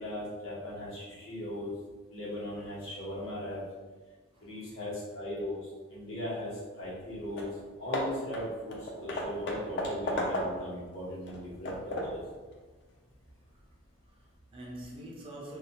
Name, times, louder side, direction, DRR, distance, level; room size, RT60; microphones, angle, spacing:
voice 1, 0.0-1.7 2.1-3.6 4.4-6.5 6.8-7.5 7.8-12.2, left 1 dB, 75° left, -8 dB, 1.0 m, -38 dB
Hammer / Wood, 7.0-7.1 7.4-7.6 7.9-10.8 11.3-12.3, left 1 dB, 55° left, 0.4 m, -34 dB
voice 2, 14.0-15.6, right 1 dB, 25° right, -3 dB, 0.4 m, -46 dB
2.4 x 2.2 x 2.8 m, 1.3 s
head